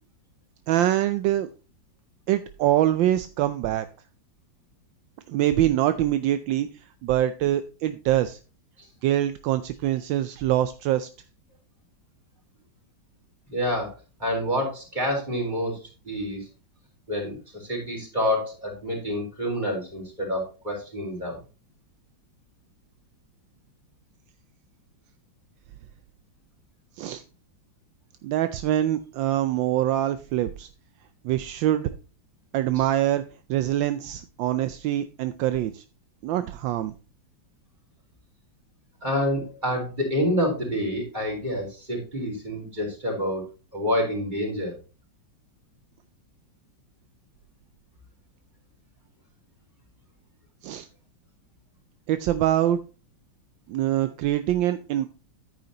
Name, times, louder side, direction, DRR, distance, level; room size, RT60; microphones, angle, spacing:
voice 1, 0.7-1.5 2.3-3.9 5.3-6.7 7.0-8.4 9.0-11.1 27.0-27.2 28.2-30.7 31.2-31.9 32.5-33.2 33.5-35.8 36.2-36.9 50.6-50.9 52.1-52.8 53.7-55.1, right 12 dB, 80° right, 11 dB, 1.3 m, -24 dB
voice 2, 13.5-13.9 14.2-15.8 16.0-16.5 17.1-21.4 39.0-43.4 43.7-44.7, equal, 20° right, -1 dB, 4.4 m, -28 dB
10.5 x 9.2 x 2.9 m, 0.33 s
omnidirectional pair, 2.1 m